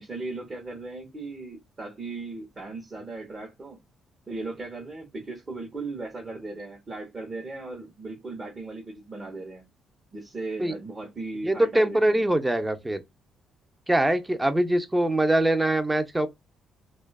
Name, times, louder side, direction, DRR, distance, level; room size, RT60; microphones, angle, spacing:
voice 1, 0.0-3.8 4.3-9.6 10.1-12.3, right 3 dB, 35° right, 0.8 m, -37 dB
voice 2, 11.4-13.0 13.9-16.3, right 1 dB, 15° right, 0.5 m, -23 dB
2.6 x 2.3 x 2.2 m
cardioid pair, 90°, 0 cm